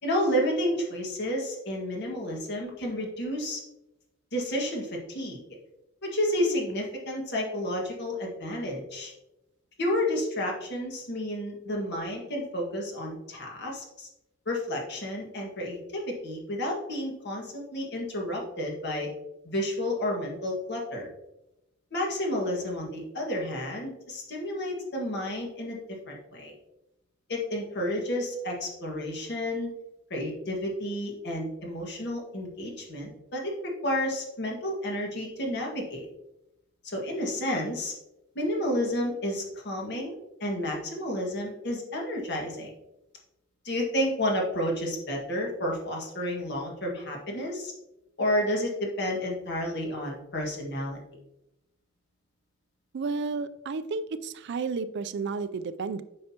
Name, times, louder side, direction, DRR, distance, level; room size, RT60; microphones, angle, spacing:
voice 1, 0.0-3.6 4.3-5.4 6.0-9.1 9.8-14.1 14.5-19.1 19.4-21.1 21.9-26.5 27.3-29.7 30.1-36.1 36.8-37.9 38.4-42.7 43.7-47.7 48.2-51.0, left 1 dB, 55° left, 0 dB, 1.7 m, -31 dB
voice 2, 52.9-56.0, right 4 dB, 60° right, 13 dB, 0.4 m, -32 dB
8.5 x 5.6 x 2.8 m, 0.91 s
head